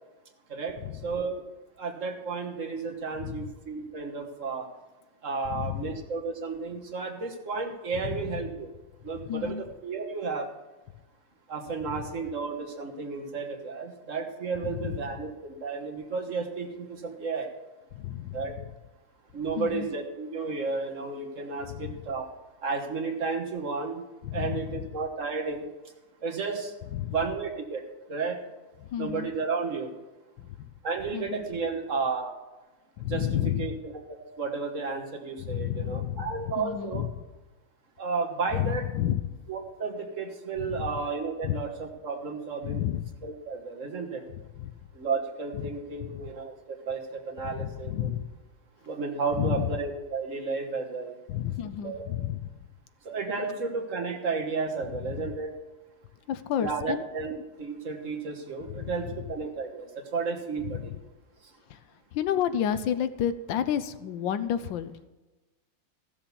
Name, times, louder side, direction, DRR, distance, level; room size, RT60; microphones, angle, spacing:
voice 1, 1.0-1.4 1.8-4.7 5.2-8.7 9.0-10.5 11.5-17.5 18.3-18.5 19.3-22.3 22.6-24.0 24.3-25.7 26.2-26.7 27.1-27.8 28.1-28.4 29.0-29.9 30.8-32.3 33.1-37.0 38.0-38.9 39.5-42.8 43.2-44.2 44.9-48.1 48.9-51.1 51.8-52.0 53.0-55.5 56.6-60.9, right 4 dB, 45° right, 3 dB, 1.6 m, -32 dB
voice 2, 3.2-3.5 5.5-5.9 8.0-8.4 9.2-9.6 11.9-12.1 14.6-15.0 17.9-18.7 19.6-19.9 21.7-22.0 24.2-24.9 26.9-27.1 28.8-29.3 30.4-30.7 31.1-31.5 33.0-33.7 35.4-37.1 38.5-39.2 40.6-40.8 41.4-41.6 42.6-43.1 44.6-44.7 45.5-45.7 46.0-46.3 47.4-48.3 49.4-49.7 51.3-52.5 55.0-55.3 56.3-57.0 58.7-59.1 60.6-61.0 61.7-61.8 62.1-65.0, left 10 dB, 85° left, 12 dB, 1.4 m, -31 dB
14.5 x 7.1 x 6.9 m, 1.1 s
omnidirectional pair, 2.0 m